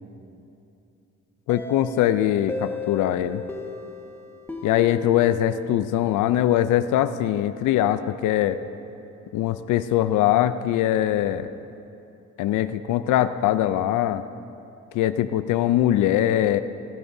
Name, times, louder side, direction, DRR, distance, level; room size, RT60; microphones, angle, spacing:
voice 1, 1.5-3.4 4.6-8.6 9.3-11.5 12.4-14.2 14.9-16.6, left 12 dB, 80° left, 12 dB, 0.5 m, -22 dB
sound 1, 1.5-6.2, left 3 dB, 10° left, 1.5 m, -36 dB
16.5 x 15.0 x 2.7 m, 2.8 s
cardioid pair, 90°, 30 cm